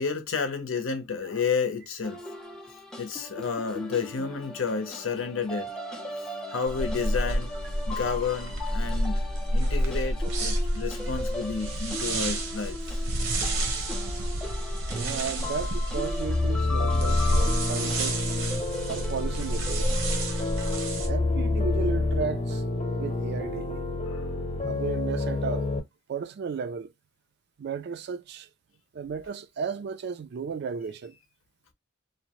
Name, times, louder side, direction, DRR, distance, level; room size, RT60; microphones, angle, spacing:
voice 1, 0.0-2.2 3.0-5.7 6.5-7.5 7.9-9.2 9.5-13.0 15.4-15.6 17.7-18.9 24.0-24.3, left 5 dB, 80° left, 0.7 m, -31 dB
sound 1, 2.0-20.8, left 2 dB, 5° left, 0.5 m, -38 dB
sound 2, 6.7-21.1, right 1 dB, 70° right, 0.7 m, -29 dB
voice 2, 14.9-18.2 18.9-20.0 21.1-22.6 23.0-23.8 24.6-25.7 26.1-26.9 27.6-28.5 28.9-31.1, right 5 dB, 55° right, 0.3 m, -34 dB
sound 3, 16.2-25.8, left 2 dB, 30° left, 0.8 m, -28 dB
2.8 x 2.1 x 2.8 m
head